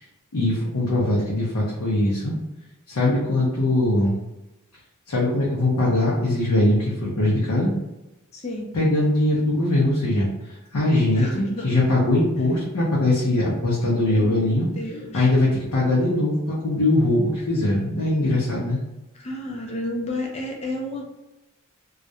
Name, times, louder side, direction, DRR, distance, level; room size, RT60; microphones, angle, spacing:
voice 1, 0.3-2.4 2.9-4.1 5.1-7.7 8.7-10.3 10.7-14.7 15.1-18.8, left 1 dB, 75° left, -7 dB, 0.6 m, -21 dB
voice 2, 8.3-8.7 11.1-11.7 14.0-14.4 14.7-15.3 19.2-21.1, left 1 dB, 30° left, 0 dB, 0.4 m, -31 dB
2.3 x 2.1 x 2.7 m, 0.96 s
head